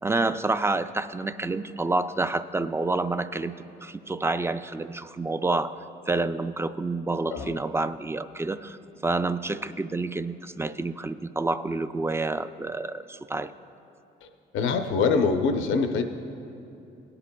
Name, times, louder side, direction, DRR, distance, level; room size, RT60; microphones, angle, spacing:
voice 1, 0.0-3.5 3.8-5.8 6.1-8.8 9.0-13.5, right 3 dB, 15° right, 11 dB, 0.3 m, -28 dB
voice 2, 14.5-16.0, left 4 dB, 85° left, 6 dB, 0.7 m, -24 dB
20.5 x 9.8 x 2.3 m, 2.7 s
cardioid pair, 90°, 20 cm